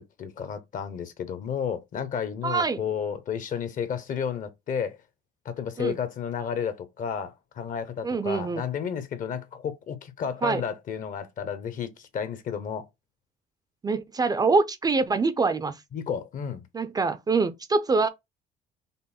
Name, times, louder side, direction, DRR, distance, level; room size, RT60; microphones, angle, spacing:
voice 1, 0.0-5.0 5.4-12.8 15.9-16.6, left 7 dB, 50° left, 0.8 m, -32 dB
voice 2, 2.4-2.8 5.8-5.9 8.0-8.6 10.4-10.6 13.8-15.8 16.7-18.1, right 4 dB, 25° right, 0.4 m, -24 dB
5.3 x 2.1 x 4.1 m
cardioid pair, 110°, 17 cm